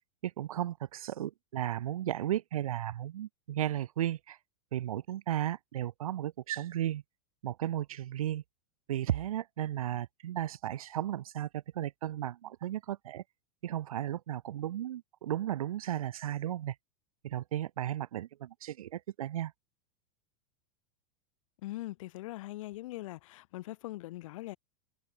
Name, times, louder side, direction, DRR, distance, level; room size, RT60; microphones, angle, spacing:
voice 1, 0.2-4.4 4.7-7.0 7.4-8.4 8.9-13.2 13.6-16.7 17.2-19.5, right 12 dB, 85° right, 2.6 m, -34 dB
voice 2, 21.6-24.6, left 17 dB, 65° left, 2.8 m, -41 dB
supercardioid pair, 140°, 18 cm